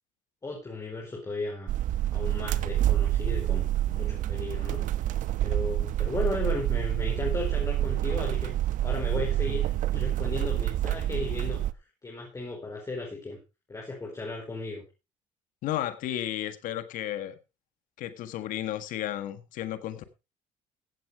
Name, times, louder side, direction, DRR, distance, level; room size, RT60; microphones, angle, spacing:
voice 1, 0.4-1.7 2.1-4.8 5.4-8.5 8.8-11.6 12.0-13.4 13.7-14.8, left 3 dB, 25° left, -1 dB, 4.7 m, -35 dB
sound 1, 1.7-11.7, right 13 dB, 70° right, 0.9 m, -27 dB
voice 2, 15.6-17.3 18.0-20.2, left 12 dB, 75° left, 10 dB, 1.6 m, -33 dB
16.0 x 7.9 x 4.7 m, 0.29 s
cardioid pair, 100°, 14 cm